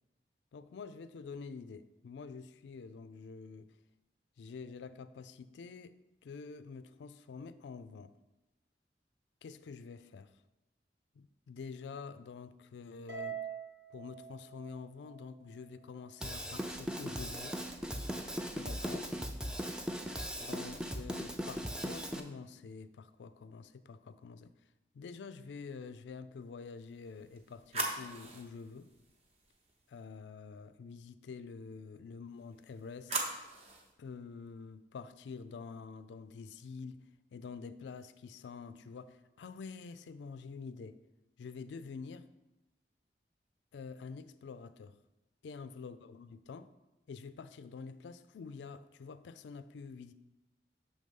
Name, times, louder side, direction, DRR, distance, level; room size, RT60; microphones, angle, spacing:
voice 1, 0.5-3.7 4.4-6.0 6.2-8.1 9.4-10.3 11.1-13.4 13.9-17.6 18.5-19.1 20.4-24.5 24.9-28.9 29.9-33.3 34.0-41.0 41.4-42.3 43.7-45.0 45.4-46.7 47.1-50.1, left 5 dB, 85° left, 13 dB, 0.3 m, -47 dB
Harp, 13.1-15.6, right 7 dB, 65° right, 1.3 m, -44 dB
Drum kit / Drum, 16.2-22.2, equal, 5° right, 0.3 m, -38 dB
sound 1, 26.9-30.0 32.4-33.9, right 2 dB, 35° right, 0.8 m, -41 dB
6.5 x 3.5 x 5.3 m, 0.97 s
head